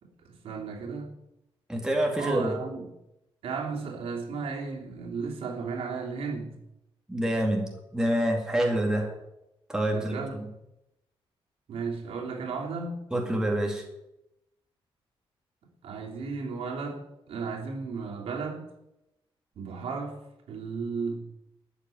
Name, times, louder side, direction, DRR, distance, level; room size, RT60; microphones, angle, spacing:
voice 1, 0.0-1.1 2.2-2.9 3.4-6.6 9.9-10.4 11.7-13.0 15.8-18.7 19.5-20.2 20.5-21.2, right 4 dB, 85° right, 0 dB, 3.1 m, -34 dB
voice 2, 1.7-2.6 7.1-9.1 9.7-10.5 13.1-13.8, right 1 dB, 5° right, 1 dB, 2.2 m, -27 dB
13.0 x 6.7 x 9.2 m, 0.88 s
wide cardioid pair, 180°, 10 cm